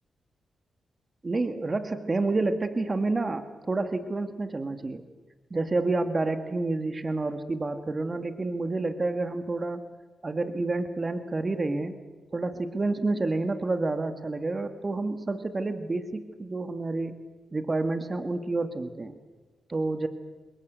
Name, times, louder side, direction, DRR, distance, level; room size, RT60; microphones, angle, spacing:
voice 1, 1.2-5.0 5.5-9.8 10.2-11.9 12.3-17.2 17.5-19.2 19.7-20.1, right 3 dB, 35° right, 9 dB, 1.9 m, -29 dB
26.0 x 22.0 x 8.2 m, 1.3 s
cardioid pair, 65°, 0 cm